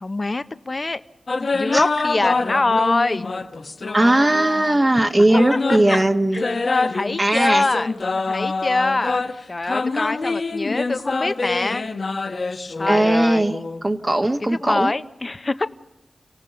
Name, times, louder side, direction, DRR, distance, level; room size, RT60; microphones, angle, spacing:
voice 1, 0.0-1.0 1.5-3.3 5.5-6.0 6.3-6.4 6.9-7.9 8.3-9.2 9.5-11.8 12.8-13.4 14.4-15.7, left 2 dB, 40° left, 12 dB, 0.9 m, -24 dB
sound 1, 1.3-4.8 5.3-13.8, left 3 dB, 60° left, 1.5 m, -25 dB
voice 2, 3.9-6.4 7.2-7.7 12.9-13.6 13.8-14.9, right 1 dB, 25° right, 5 dB, 1.3 m, -18 dB
30.0 x 17.5 x 7.1 m, 0.95 s
wide cardioid pair, 65°, 0 cm